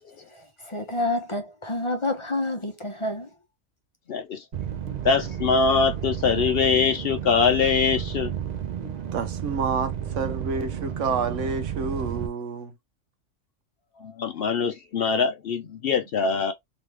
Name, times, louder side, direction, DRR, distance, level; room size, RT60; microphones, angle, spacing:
voice 1, 0.6-3.3, left 2 dB, 30° left, 0.8 m, -28 dB
voice 2, 4.1-4.4 4.9-8.3 8.8-8.9 14.0-16.5, left 5 dB, 60° left, 0.7 m, -23 dB
sound 1, 4.5-12.3, right 9 dB, 55° right, 0.4 m, -32 dB
voice 3, 9.1-12.7, right 5 dB, 70° right, 1.1 m, -29 dB
3.2 x 3.1 x 3.2 m
omnidirectional pair, 1.3 m